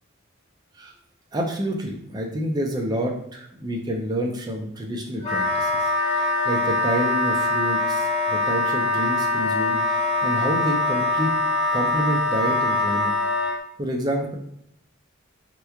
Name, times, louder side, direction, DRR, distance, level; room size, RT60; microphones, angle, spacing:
voice 1, 1.3-11.3 11.7-13.1 13.4-14.3, equal, 20° right, 1 dB, 0.4 m, -28 dB
Wind instrument woodwind instrument, 5.2-13.6, left 2 dB, 30° left, 0.7 m, -23 dB
2.9 x 2.2 x 3.5 m, 0.73 s
head